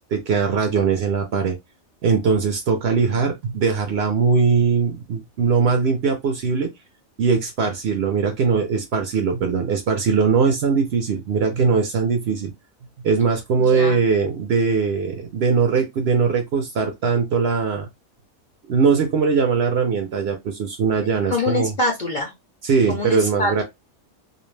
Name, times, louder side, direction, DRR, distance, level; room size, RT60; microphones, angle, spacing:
voice 1, 0.0-1.6 2.0-6.7 7.2-12.5 13.0-17.9 18.7-21.7 22.6-23.6, right 5 dB, 60° right, 0.7 m, -20 dB
voice 2, 2.8-3.3 13.6-14.1 21.3-22.3 22.9-23.6, left 2 dB, 50° left, 0.6 m, -25 dB
2.5 x 2.0 x 3.1 m
omnidirectional pair, 1.4 m